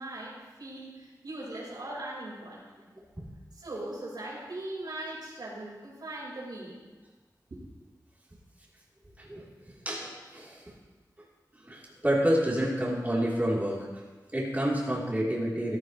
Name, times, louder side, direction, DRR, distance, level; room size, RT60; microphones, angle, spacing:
voice 1, 0.0-2.9 3.5-6.8 7.5-7.6, right 1 dB, 90° right, -6 dB, 4.8 m, -40 dB
voice 2, 9.2-10.6 11.6-13.9 14.3-15.8, equal, 25° right, -6 dB, 3.5 m, -29 dB
14.5 x 14.5 x 3.2 m, 1.3 s
wide cardioid pair, 65°, 7 cm